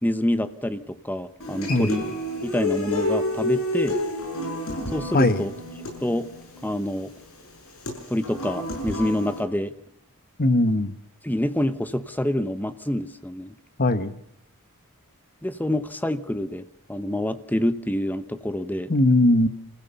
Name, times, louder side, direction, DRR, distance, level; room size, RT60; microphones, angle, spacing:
voice 1, 0.0-2.1 2.4-4.0 4.9-5.5 6.0-6.3 6.6-7.1 8.1-9.7 11.2-13.6 15.4-18.9, left 1 dB, 10° left, 11 dB, 0.9 m, -27 dB
Human voice / Acoustic guitar, 1.4-9.4, left 1 dB, 70° left, 7.4 m, -30 dB
voice 2, 10.4-10.9 13.8-14.2 18.9-19.5, left 1 dB, 45° left, 11 dB, 1.3 m, -19 dB
28.0 x 15.5 x 7.0 m, 0.72 s
head